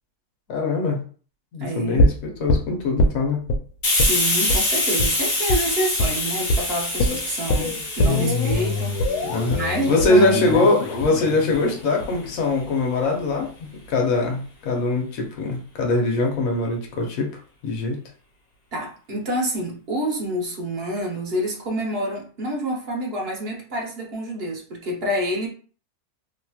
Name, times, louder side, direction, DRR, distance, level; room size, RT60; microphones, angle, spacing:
voice 1, 0.5-1.0 1.5-3.4 9.3-9.6 9.9-17.3 17.6-18.0, left 2 dB, 65° left, 1 dB, 1.2 m, -22 dB
voice 2, 1.6-2.1 3.9-10.8 18.7-25.5, right 1 dB, 50° right, -1 dB, 0.9 m, -28 dB
sound 1, 2.0-3.6 4.0-4.2 4.5-4.6 5.0-5.1 5.5-5.6 6.0-6.2 6.5-6.6 7.0-13.0 13.3-13.4, left 1 dB, 90° left, 1.1 m, -23 dB
Hiss, 3.8-11.2, left 2 dB, 40° left, 0.8 m, -26 dB
2.9 x 2.9 x 2.3 m, 0.41 s
omnidirectional pair, 1.6 m